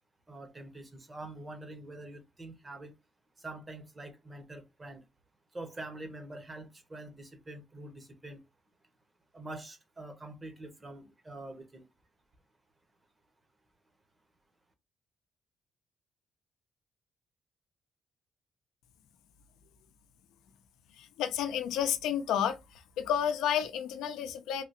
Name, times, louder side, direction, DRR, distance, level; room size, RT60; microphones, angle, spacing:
voice 1, 0.3-2.9 3.4-5.0 5.5-8.4 9.3-11.9, right 2 dB, 25° right, 0.9 m, -45 dB
voice 2, 21.2-22.6 23.0-24.6, left 9 dB, 90° left, 0.5 m, -30 dB
3.3 x 2.4 x 2.9 m
cardioid pair, 90°, 0 cm